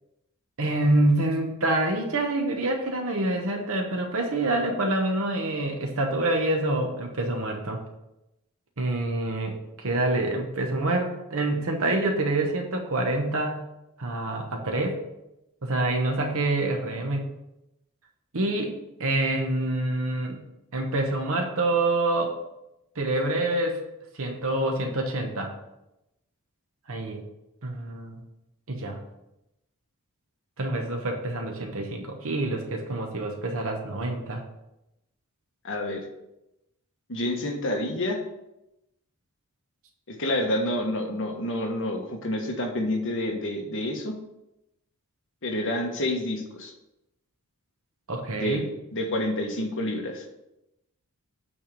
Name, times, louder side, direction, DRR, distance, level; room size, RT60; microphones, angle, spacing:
voice 1, 0.6-7.8 8.8-13.6 14.0-15.0 15.6-17.2 18.3-20.4 20.7-22.3 23.0-23.8 24.1-25.5 26.9-27.2 27.6-28.2 28.7-29.0 30.6-34.4 48.1-48.6, right 2 dB, 65° right, 2 dB, 1.1 m, -26 dB
voice 2, 35.6-36.0 37.1-38.2 40.1-44.1 45.4-46.7 48.3-48.6 48.9-50.2, left 1 dB, 60° left, 2 dB, 1.3 m, -28 dB
8.7 x 3.5 x 6.8 m, 0.90 s
head